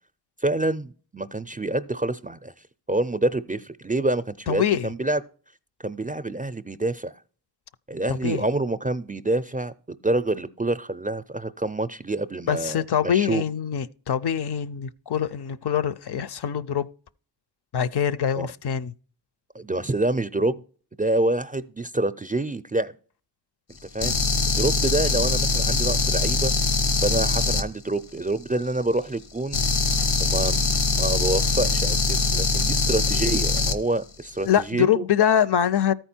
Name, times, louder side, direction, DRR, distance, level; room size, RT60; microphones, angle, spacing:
voice 1, 0.4-2.5 2.9-5.2 5.8-7.1 7.9-13.4 18.4-18.5 19.5-20.6 21.0-22.9 23.9-24.2 24.6-26.5 27.0-29.6 30.2-35.1, right 2 dB, 20° right, 0.4 m, -27 dB
voice 2, 4.5-4.9 8.1-8.4 12.5-16.9 17.7-18.9 34.4-35.9, left 9 dB, 65° left, 0.5 m, -24 dB
sound 1, 24.0-27.6 29.5-33.8, left 3 dB, 90° left, 0.8 m, -22 dB
13.5 x 4.5 x 4.3 m
cardioid pair, 50°, 43 cm